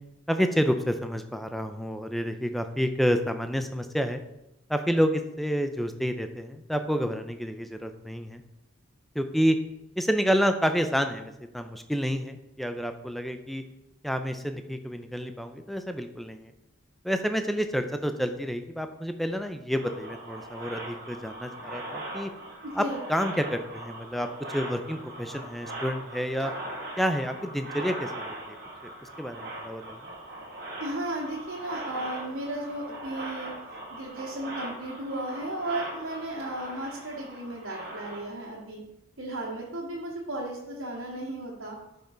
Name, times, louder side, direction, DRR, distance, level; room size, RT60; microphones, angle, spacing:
voice 1, 0.3-4.2 4.7-8.4 9.1-9.6 10.0-13.6 14.0-16.5 17.0-22.3 22.8-22.9 23.1-26.5 27.0-28.6 28.8-28.9 29.2-30.0, equal, ahead, 7 dB, 0.5 m, -29 dB
sound 1, 19.7-38.2, right 1 dB, 50° right, 2.0 m, -40 dB
voice 2, 22.6-23.0 30.8-33.5 33.9-38.8 39.2-41.8, right 1 dB, 90° right, -7 dB, 1.8 m, -35 dB
11.5 x 5.5 x 3.9 m, 0.90 s
head